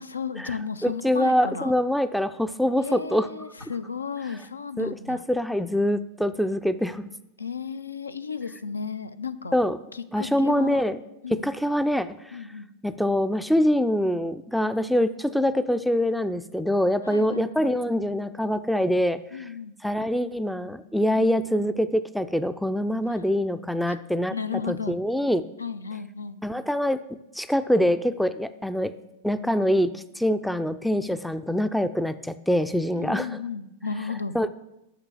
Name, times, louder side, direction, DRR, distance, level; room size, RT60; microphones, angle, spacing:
voice 1, 0.0-1.7 2.8-5.2 7.4-9.6 9.9-10.8 11.2-11.4 12.3-12.7 17.0-17.7 19.3-19.7 21.1-21.3 23.1-23.2 23.9-24.0 24.3-25.0 25.6-26.4 32.9-34.4, left 6 dB, 75° left, 13 dB, 0.4 m, -34 dB
voice 2, 0.8-3.3 4.8-7.1 9.5-9.8 10.1-11.0 11.3-12.4 12.8-19.4 19.8-24.4 24.7-25.5 26.4-27.0 27.3-28.9 29.2-33.4 34.3-34.5, equal, ahead, 12 dB, 0.3 m, -24 dB
5.9 x 5.8 x 6.9 m, 0.88 s
figure-of-eight pair, 90°, 0 cm